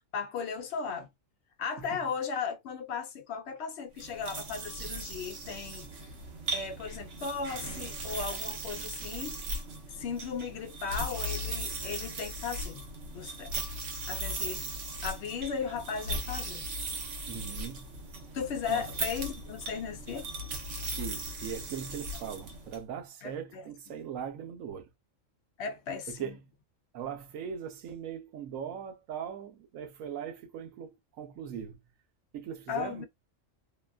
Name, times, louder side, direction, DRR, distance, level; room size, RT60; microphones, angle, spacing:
voice 1, 0.1-1.1 1.6-5.9 6.5-9.4 10.0-12.8 13.1-13.5 14.1-14.6 15.0-16.6 18.3-20.3 23.2-23.6 25.6-26.4 32.7-33.0, left 6 dB, 65° left, 0.8 m, -36 dB
sound 1, 3.9-22.8, right 2 dB, 65° right, 1.1 m, -38 dB
voice 2, 17.2-17.9 18.7-18.8 20.8-24.9 26.1-26.4 26.9-31.8 32.3-33.0, right 8 dB, 90° right, 1.1 m, -40 dB
2.8 x 2.3 x 2.3 m
omnidirectional pair, 1.3 m